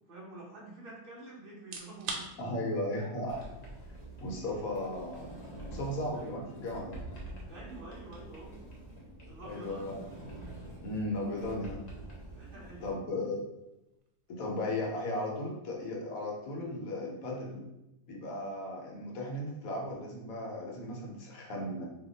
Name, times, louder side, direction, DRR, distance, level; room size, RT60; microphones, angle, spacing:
voice 1, 0.1-2.6 6.1-6.3 7.5-8.6 9.3-9.9 12.3-12.9, right 2 dB, 50° right, -4 dB, 0.7 m, -48 dB
sound 1, 1.6-16.4, right 4 dB, 85° right, 1.2 m, -51 dB
voice 2, 2.4-3.4 4.2-5.3 5.7-7.0 9.4-9.9 10.8-11.8 12.8-13.4 14.3-17.6 18.1-21.8, left 1 dB, 65° left, -2 dB, 1.1 m, -36 dB
Sliding door, 3.3-12.9, right 1 dB, 40° left, 0.6 m, -46 dB
2.8 x 2.3 x 3.8 m, 0.93 s
omnidirectional pair, 1.7 m